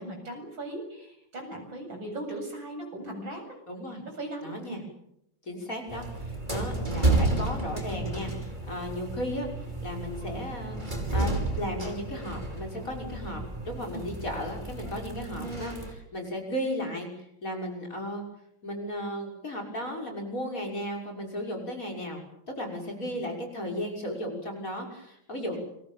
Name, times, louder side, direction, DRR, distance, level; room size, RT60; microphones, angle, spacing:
voice 1, 0.0-3.6 4.1-4.9 13.9-14.2 22.8-23.2 25.4-25.6, right 1 dB, 85° right, 3 dB, 8.6 m, -39 dB
voice 2, 3.7-4.0 4.4-4.8 5.5-9.5 9.8-17.1 17.4-18.2 18.6-22.2 22.5-25.6, equal, 45° left, 1 dB, 6.4 m, -35 dB
sound 1, 5.9-15.9, right 2 dB, 25° right, 5.6 m, -31 dB
29.0 x 23.0 x 7.3 m, 0.76 s
omnidirectional pair, 2.1 m